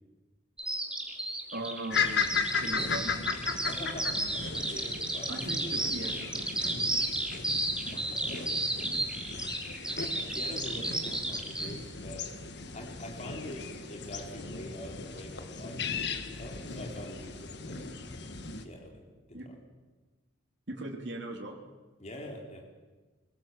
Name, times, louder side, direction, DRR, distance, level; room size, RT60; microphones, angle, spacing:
Bird vocalization bird call bird song, 0.6-11.7, right 1 dB, 5° right, 2.4 m, -32 dB
voice 1, 1.5-3.2 5.3-6.6 7.3-7.5 7.9-8.4 19.3-19.5 20.7-21.6, right 2 dB, 60° right, 0 dB, 3.0 m, -40 dB
sound 1, 1.9-18.6, left 5 dB, 55° left, 1.7 m, -36 dB
voice 2, 3.6-5.3 7.9-9.6 9.9-12.3 12.7-17.9 18.6-19.1 22.0-22.6, left 1 dB, 35° left, 1 dB, 3.4 m, -45 dB
23.0 x 19.5 x 7.6 m, 1.3 s
head